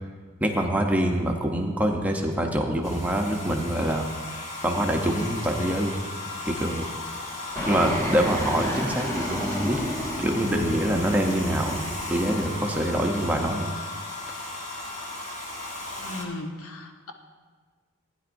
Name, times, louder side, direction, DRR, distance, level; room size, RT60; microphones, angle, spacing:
voice 1, 0.4-6.0 6.4-6.9 7.7-9.9 10.2-11.8 12.1-13.7, right 1 dB, 5° right, 2 dB, 0.7 m, -25 dB
Domestic sounds home sounds, 2.8-16.2, left 2 dB, 35° left, 1.3 m, -36 dB
Fixed-wing aircraft airplane, 7.6-13.0, left 1 dB, 15° left, 1.1 m, -32 dB
voice 2, 16.0-17.1, left 2 dB, 70° left, 4 dB, 0.9 m, -37 dB
15.5 x 9.8 x 2.6 m, 1.5 s
head